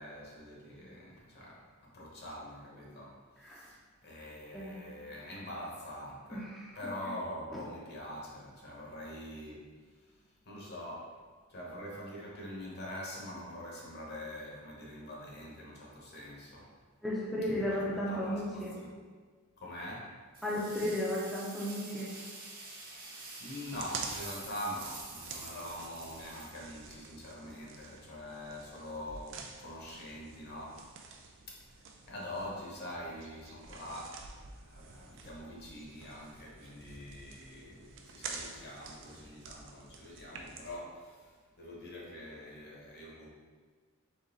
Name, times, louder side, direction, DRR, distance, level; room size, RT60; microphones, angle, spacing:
voice 1, 0.0-6.5 6.7-11.2 11.5-16.7 17.6-18.9 19.6-20.2 23.4-31.0 31.4-43.3, left 1 dB, 50° left, -3 dB, 1.0 m, -44 dB
voice 2, 6.3-6.6 17.0-18.7 20.4-22.1, left 1 dB, ahead, -7 dB, 0.5 m, -34 dB
sound 1, 20.3-27.1, right 3 dB, 40° right, 0.8 m, -47 dB
sound 2, 23.7-40.8, right 4 dB, 60° right, 0.4 m, -48 dB
3.9 x 3.1 x 3.9 m, 1.5 s
head